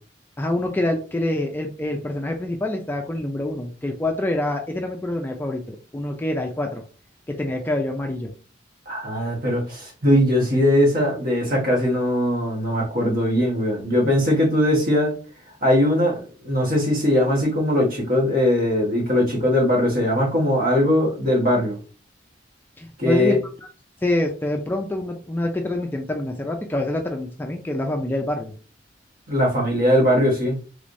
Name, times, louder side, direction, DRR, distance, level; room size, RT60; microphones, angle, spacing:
voice 1, 0.4-6.8 7.3-8.3 22.8-23.7 24.0-28.5, left 1 dB, 10° left, 2 dB, 0.3 m, -26 dB
voice 2, 8.9-15.1 15.6-21.8 23.0-23.4 29.3-30.6, left 1 dB, 50° right, -1 dB, 1.2 m, -20 dB
3.3 x 3.2 x 2.6 m, 0.38 s
head